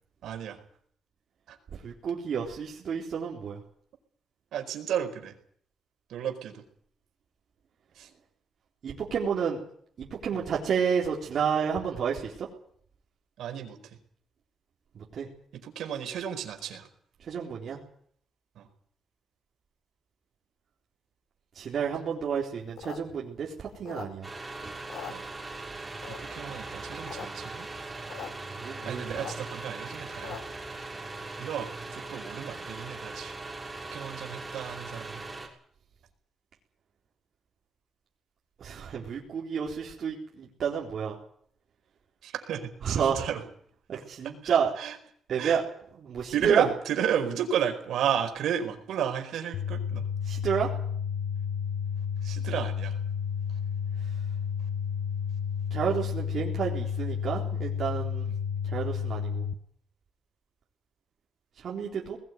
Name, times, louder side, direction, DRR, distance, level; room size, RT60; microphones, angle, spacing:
voice 1, 0.2-0.6 1.5-1.6 4.5-5.3 6.1-6.6 7.9-8.1 13.4-14.0 15.5-16.9 18.5-18.7 25.1-25.3 26.1-27.7 28.8-30.4 31.4-33.3 33.9-35.2 42.2-43.4 43.9-44.0 44.4-45.0 45.4-45.6 46.3-50.1 52.2-53.0 58.3-58.4, right 9 dB, 85° right, 5 dB, 4.7 m, -33 dB
voice 2, 1.8-3.6 8.8-9.6 10.0-12.5 14.9-15.3 17.3-17.8 21.5-24.3 28.6-29.0 38.6-41.1 42.8-43.2 43.9-44.7 45.3-45.6 46.0-46.7 50.3-50.7 55.7-58.3 58.6-59.5 61.6-62.2, right 7 dB, 55° right, -3 dB, 4.0 m, -30 dB
sound 1, 22.6-24.5 24.8-25.7 26.0-26.5 26.9-27.3 27.5-27.6 27.8-28.3 28.6-30.6, left 9 dB, 85° left, 2.9 m, -42 dB
sound 2, 24.2-35.5, right 3 dB, 15° right, 6.5 m, -40 dB
sound 3, 49.5-59.5, left 7 dB, 65° left, 1.3 m, -31 dB
20.5 x 18.0 x 9.5 m, 0.62 s
cardioid pair, 125°, 0 cm